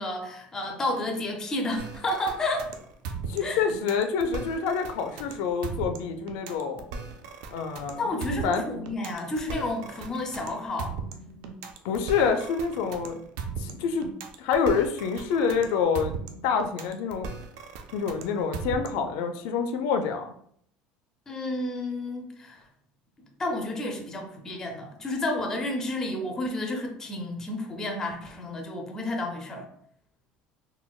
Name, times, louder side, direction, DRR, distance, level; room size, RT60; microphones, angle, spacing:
voice 1, 0.0-2.7 3.4-3.6 8.0-10.9 21.3-22.6 23.4-29.7, left 1 dB, 15° left, 2 dB, 0.4 m, -31 dB
sound 1, 1.8-19.2, right 5 dB, 80° right, 0.4 m, -38 dB
voice 2, 3.3-6.9 7.5-8.2 8.4-8.6 11.8-13.2 13.6-14.1 14.4-16.1 16.4-17.3 17.9-20.3, left 6 dB, 75° left, 6 dB, 0.4 m, -27 dB
4.0 x 2.1 x 2.3 m, 0.65 s
cardioid pair, 175°, 3 cm